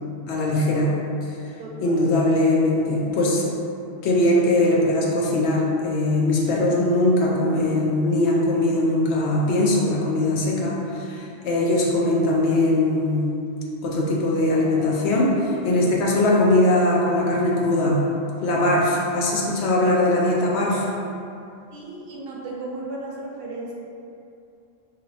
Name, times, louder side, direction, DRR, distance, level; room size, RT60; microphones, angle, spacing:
voice 1, 0.3-0.9 1.8-3.4 4.0-13.3 13.8-18.0 18.4-20.9, left 1 dB, 70° left, -3 dB, 0.8 m, -21 dB
voice 2, 1.6-2.2 11.4-11.5 21.7-23.7, right 2 dB, 60° right, -3 dB, 0.7 m, -35 dB
2.8 x 2.3 x 4.1 m, 2.7 s
omnidirectional pair, 1.2 m